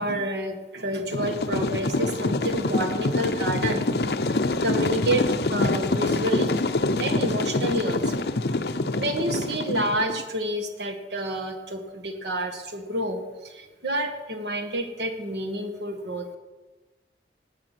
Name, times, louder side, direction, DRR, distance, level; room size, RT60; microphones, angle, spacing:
voice 1, 0.0-4.2 4.6-6.5 7.0-8.3 9.0-16.3, right 1 dB, 75° right, 5 dB, 1.8 m, -29 dB
sound 1, 1.1-10.2, left 2 dB, 60° left, 0.7 m, -25 dB
19.0 x 7.6 x 6.1 m, 1.2 s
head